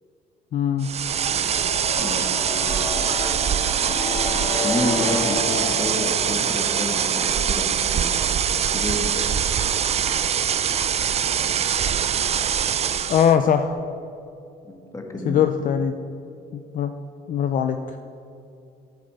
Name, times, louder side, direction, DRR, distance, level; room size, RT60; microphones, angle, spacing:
voice 1, 0.5-0.9 13.1-13.7 15.3-15.9 16.5-16.9 17.3-18.0, left 8 dB, 55° left, 7 dB, 0.6 m, -21 dB
sound 1, 0.8-13.3, right 8 dB, 40° right, 0.5 m, -23 dB
sound 2, 1.1-12.9 13.2-13.3, left 3 dB, 70° left, 2.9 m, -33 dB
voice 2, 2.0-2.9 4.6-8.1 8.7-9.1 14.6-15.4, left 1 dB, 20° left, 3 dB, 1.6 m, -30 dB
9.8 x 8.4 x 6.8 m, 2.6 s
cardioid pair, 110°, 17 cm